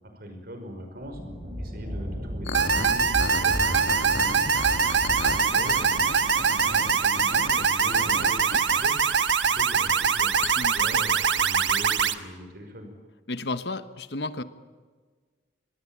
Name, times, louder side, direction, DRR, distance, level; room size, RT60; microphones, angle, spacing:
voice 1, 0.2-1.2 1.6-4.5 5.1-6.1 6.4-9.0 9.4-12.9, equal, 55° right, 6 dB, 5.5 m, -40 dB
Thunder, 1.0-7.6, equal, 35° right, 4.5 m, -36 dB
sound 1, 2.4-9.5 10.4-10.5, left 3 dB, 90° left, 1.5 m, -35 dB
sound 2, 2.5-12.1, right 6 dB, 85° right, 1.3 m, -23 dB
voice 2, 10.6-11.0 13.3-14.4, left 2 dB, 65° left, 12 dB, 1.2 m, -33 dB
25.0 x 20.5 x 8.7 m, 1.5 s
head